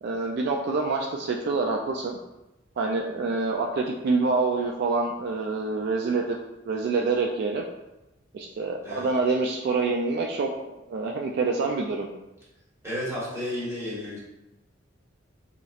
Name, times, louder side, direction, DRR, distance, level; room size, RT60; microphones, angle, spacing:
voice 1, 0.0-2.2 2.8-6.4 6.7-7.6 8.3-10.5 10.9-12.1, right 3 dB, 55° right, 1 dB, 0.3 m, -26 dB
voice 2, 12.8-14.2, left 1 dB, 15° right, -9 dB, 1.4 m, -32 dB
4.1 x 2.9 x 2.4 m, 0.96 s
head